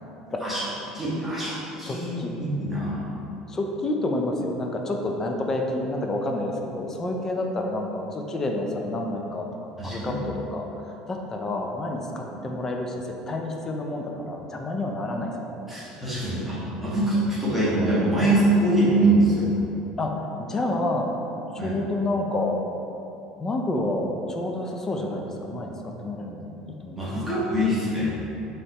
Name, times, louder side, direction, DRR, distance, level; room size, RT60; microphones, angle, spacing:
voice 1, 0.9-3.0 9.8-10.2 12.3-12.4 15.7-19.5 21.6-21.8 26.9-28.1, right 1 dB, 10° right, -10 dB, 1.3 m, -24 dB
voice 2, 1.8-2.3 3.5-10.7 11.1-15.6 20.0-21.1 21.5-22.6 23.4-27.3, left 2 dB, 20° left, 2 dB, 0.5 m, -29 dB
5.3 x 3.3 x 2.9 m, 3.0 s
supercardioid pair, 125°, 2 cm